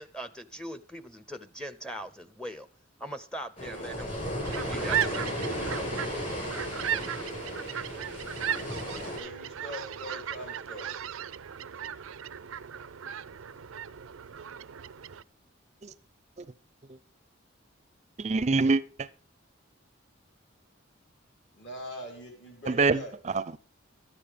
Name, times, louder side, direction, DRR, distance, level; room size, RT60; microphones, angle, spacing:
voice 1, 0.0-2.7 3.0-5.6, equal, 5° left, 0.6 m, -41 dB
sound 1, 3.6-9.2, left 1 dB, 35° left, 5.4 m, -35 dB
sound 2, 4.4-15.2, right 9 dB, 85° right, 0.5 m, -36 dB
voice 2, 9.1-10.9 21.5-23.1, equal, 60° left, 3.6 m, -42 dB
voice 3, 18.2-19.1 22.7-23.0 23.3-23.6, right 3 dB, 35° right, 0.5 m, -25 dB
13.5 x 9.8 x 5.1 m
head